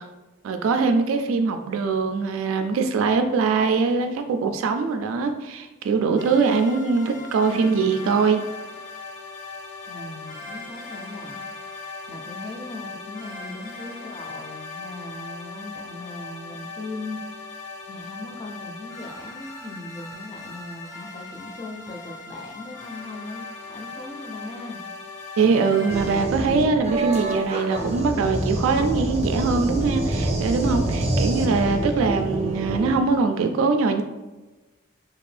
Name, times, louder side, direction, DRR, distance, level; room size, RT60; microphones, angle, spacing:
voice 1, 0.4-8.4 25.4-34.0, right 4 dB, 90° right, 6 dB, 0.3 m, -22 dB
sound 1, 6.2-26.1, left 3 dB, 80° left, 0.6 m, -39 dB
voice 2, 9.8-11.8 12.1-17.5 17.9-24.8 31.0-31.7, left 2 dB, 25° left, 2 dB, 0.4 m, -39 dB
sound 2, 25.9-32.9, right 1 dB, 30° right, 0.5 m, -26 dB
2.8 x 2.5 x 3.2 m, 1.1 s
head